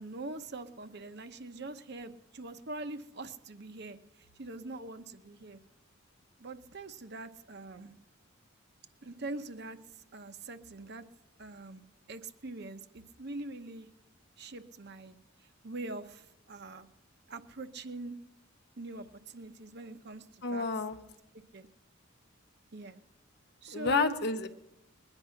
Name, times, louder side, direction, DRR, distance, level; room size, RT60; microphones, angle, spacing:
voice 1, 0.0-5.6 6.4-7.9 9.0-9.8 10.1-11.0 11.4-11.8 12.1-13.9 14.4-16.9 17.3-18.2 18.8-20.7 21.5-21.7 22.7-23.0 23.6-24.2, right 2 dB, 55° right, 9 dB, 0.9 m, -43 dB
voice 2, 20.4-21.0 23.7-24.5, left 4 dB, 55° left, 8 dB, 0.9 m, -30 dB
21.0 x 9.9 x 5.8 m, 0.92 s
head